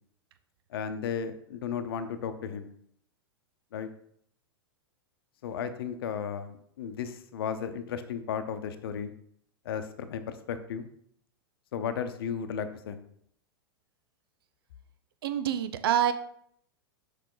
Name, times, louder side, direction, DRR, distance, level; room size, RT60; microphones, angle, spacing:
voice 1, 0.7-2.7 3.7-3.9 5.4-9.1 9.6-10.9 11.7-13.0, left 7 dB, 65° left, 10 dB, 0.8 m, -34 dB
voice 2, 15.2-16.1, right 10 dB, 65° right, 11 dB, 0.6 m, -26 dB
6.5 x 4.9 x 3.9 m, 0.67 s
hypercardioid pair, 100°, 13 cm